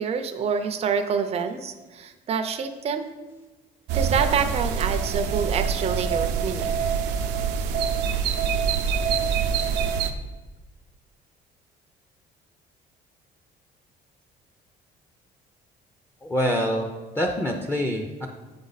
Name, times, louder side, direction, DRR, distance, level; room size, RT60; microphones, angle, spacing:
voice 1, 0.0-3.1 3.9-6.7, right 6 dB, 40° right, 6 dB, 0.5 m, -27 dB
sound 1, 3.9-10.1, right 6 dB, 85° right, 0.6 m, -25 dB
voice 2, 16.2-16.9 17.2-18.3, equal, 15° left, 2 dB, 0.6 m, -25 dB
7.8 x 5.2 x 4.0 m, 1.2 s
cardioid pair, 110°, 17 cm